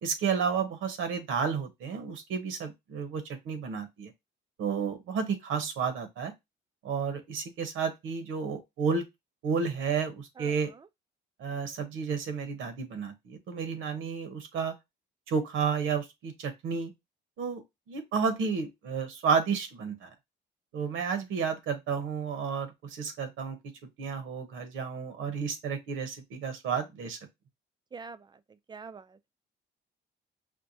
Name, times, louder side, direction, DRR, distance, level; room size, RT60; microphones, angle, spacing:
voice 1, 0.0-4.1 4.6-6.3 6.8-9.0 9.4-10.7 11.4-14.7 15.3-16.9 17.4-17.6 17.9-20.1 20.7-23.6 24.0-27.2, right 6 dB, 80° right, 0.9 m, -31 dB
voice 2, 27.9-28.3 28.7-29.3, right 5 dB, 20° right, 0.3 m, -44 dB
4.5 x 2.1 x 2.6 m
cardioid pair, 90°, 20 cm